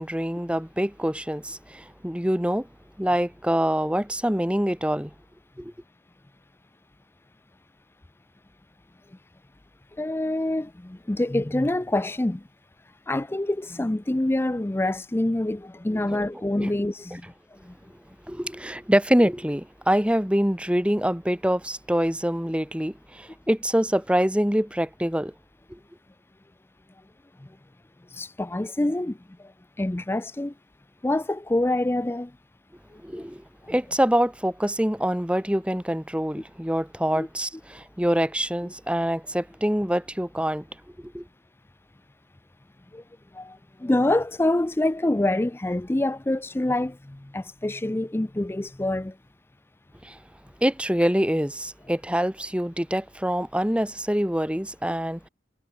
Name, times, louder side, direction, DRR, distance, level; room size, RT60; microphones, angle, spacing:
voice 1, 0.0-2.7 3.0-5.1 5.6-5.7 16.1-16.3 16.6-16.7 18.3-25.3 25.7-25.8 33.0-33.4 33.7-40.7 41.1-41.2 50.0-50.2 50.6-55.3, equal, 5° right, 2.5 m, -25 dB
voice 2, 10.0-12.4 13.1-17.2 28.1-29.2 29.8-30.5 31.0-32.3 33.1-33.2 37.1-37.3 42.9-43.0 43.3-49.1, left 1 dB, 15° left, 0.4 m, -26 dB
head